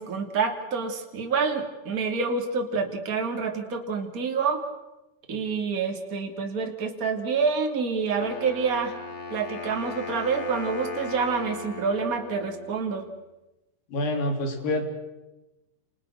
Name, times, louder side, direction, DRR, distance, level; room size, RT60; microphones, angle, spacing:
voice 1, 0.0-4.7 5.3-9.0 9.3-13.1, right 5 dB, 25° right, 3 dB, 2.9 m, -27 dB
Wind instrument woodwind instrument, 8.2-13.1, left 5 dB, 50° left, 4.4 m, -38 dB
voice 2, 13.9-14.8, left 1 dB, 80° left, 4 dB, 5.3 m, -27 dB
29.5 x 29.5 x 6.6 m, 1.0 s
omnidirectional pair, 4.0 m